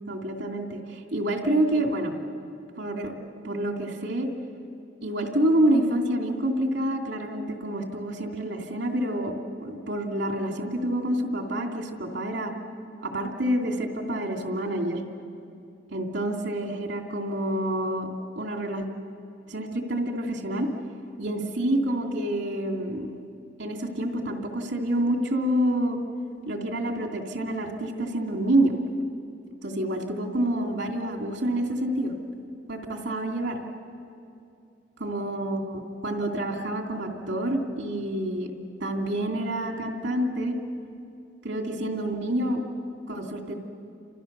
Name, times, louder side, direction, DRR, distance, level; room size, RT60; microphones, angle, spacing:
voice 1, 0.1-2.2 2.8-3.1 3.4-4.3 5.0-12.5 13.0-15.0 15.9-18.1 18.4-18.8 19.5-20.7 21.2-23.1 23.6-26.0 26.5-28.7 29.6-32.1 32.7-33.6 35.0-38.5 38.8-40.6 41.4-42.6 43.1-43.5, right 1 dB, 75° right, 2 dB, 2.8 m, -27 dB
29.5 x 27.5 x 6.8 m, 2.6 s
head